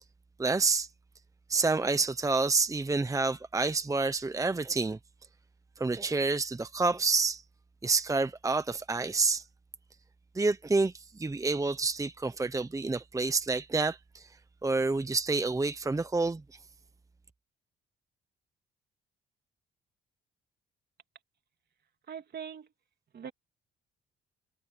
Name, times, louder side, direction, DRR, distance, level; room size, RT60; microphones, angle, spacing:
voice 1, 0.4-0.9 1.5-5.0 5.8-7.4 7.8-9.4 10.3-14.3 14.6-16.4, right 3 dB, 15° right, 0.9 m, -28 dB
voice 2, 22.1-22.7 23.1-23.3, right 7 dB, 55° right, 2.9 m, -41 dB
cardioid pair, 90°, 20 cm